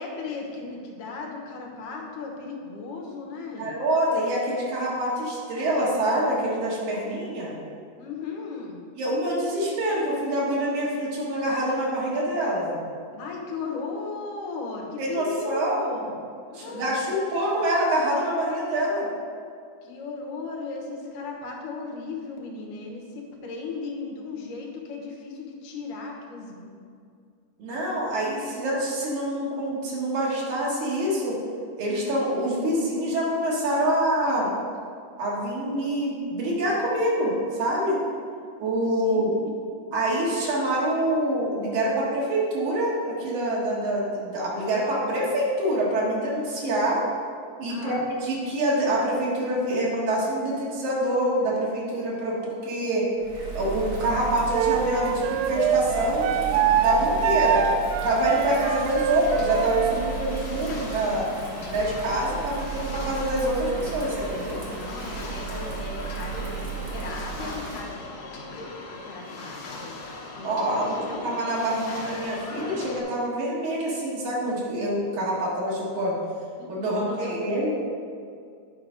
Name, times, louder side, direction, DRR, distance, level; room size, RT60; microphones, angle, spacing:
voice 1, 0.0-3.8 7.0-7.3 8.0-8.8 13.1-16.1 16.5-17.1 19.8-26.7 38.4-39.5 47.7-48.0 64.5-68.0 69.0-70.0 70.4-71.3 76.6-77.7, left 4 dB, 90° left, 0 dB, 2.6 m, -36 dB
voice 2, 3.6-7.5 9.0-12.8 15.0-15.9 16.5-19.1 27.6-31.4 31.8-34.5 35.2-38.0 38.6-39.3 39.9-47.0 47.6-47.9 48.2-53.1 53.5-57.7 58.0-61.3 61.7-64.6 70.4-76.2 76.7-77.7, right 1 dB, 70° right, -5 dB, 2.8 m, -26 dB
Bird vocalization bird call bird song / Rain, 53.2-67.8, right 6 dB, 50° right, 1.1 m, -35 dB
Wind instrument woodwind instrument, 54.5-60.0, right 8 dB, 90° right, 1.5 m, -24 dB
sound 1, 57.8-73.0, left 2 dB, 70° left, 2.4 m, -39 dB
9.6 x 4.9 x 5.0 m, 2.3 s
omnidirectional pair, 3.6 m